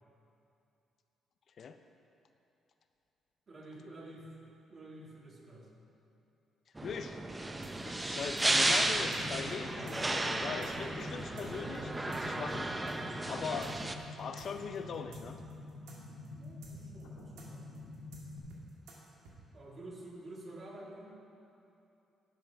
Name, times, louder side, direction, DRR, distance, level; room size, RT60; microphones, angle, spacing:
voice 1, 3.5-4.3 4.7-5.7 16.4-17.7 19.5-21.2, right 1 dB, 35° right, -2 dB, 1.8 m, -49 dB
voice 2, 6.8-7.2 7.9-12.7 13.3-13.7 14.1-15.4, left 6 dB, 55° left, 8 dB, 0.5 m, -40 dB
sound 1, 6.8-13.9, right 2 dB, 15° right, 0.5 m, -34 dB
sound 2, 7.6-13.0 13.2-13.4 13.6-19.4, right 3 dB, 90° right, 1.6 m, -55 dB
sound 3, 8.4-18.4, left 2 dB, 80° left, 1.7 m, -48 dB
11.0 x 5.7 x 5.7 m, 2.8 s
cardioid pair, 90°, 0 cm